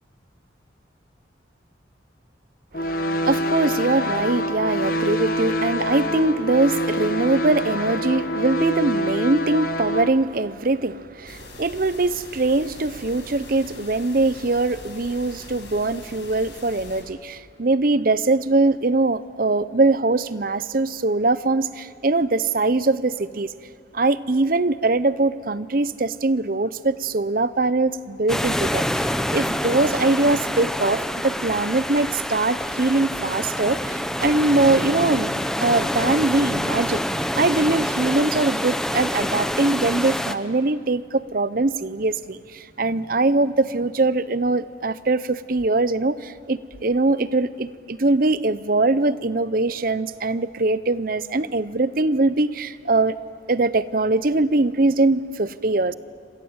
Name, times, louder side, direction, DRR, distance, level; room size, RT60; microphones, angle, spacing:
sound 1, 2.7-10.1, equal, 50° left, 1.3 m, -25 dB
voice 1, 2.7-23.5 23.9-35.3 35.6-37.0 37.4-53.2 53.5-55.9, right 2 dB, 50° right, 0.7 m, -22 dB
sound 2, 11.3-17.0, left 3 dB, 75° left, 5.5 m, -42 dB
sound 3, 28.3-40.4, equal, 5° left, 0.8 m, -26 dB
28.0 x 26.0 x 8.1 m
head